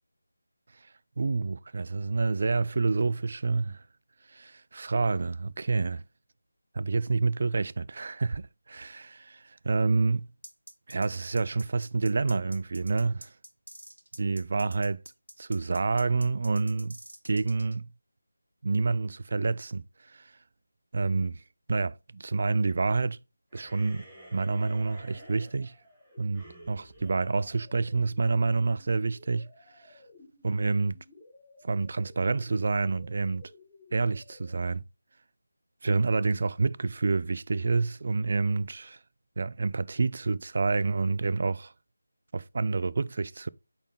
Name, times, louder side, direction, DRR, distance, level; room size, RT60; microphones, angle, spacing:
voice 1, 1.2-3.8 4.3-6.0 6.7-10.3 10.9-13.3 14.2-15.0 15.4-17.0 17.2-17.9 18.6-19.8 20.1-20.2 20.9-21.4 21.7-23.2 23.5-24.0 24.3-25.7 26.2-29.5 30.4-31.0 31.6-33.4 33.9-34.8 35.8-39.0 39.4-41.7 42.3-43.5, right 3 dB, 40° right, 0.3 m, -28 dB
sound 1, 10.4-17.8, right 1 dB, 70° right, 1.3 m, -48 dB
sound 2, 23.5-28.2, right 1 dB, 10° right, 1.7 m, -51 dB
sound 3, 25.1-34.7, left 2 dB, 15° left, 1.0 m, -56 dB
8.3 x 4.3 x 3.2 m
figure-of-eight pair, 160°, 0 cm